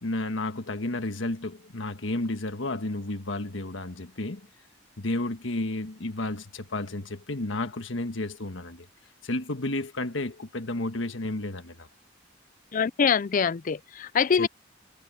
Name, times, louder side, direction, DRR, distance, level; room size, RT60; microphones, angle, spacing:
voice 1, 0.0-4.5 5.0-8.9 9.2-11.9 14.4-14.5, left 2 dB, 85° left, 1.4 m, -32 dB
voice 2, 12.7-14.5, left 6 dB, 45° left, 0.4 m, -24 dB
head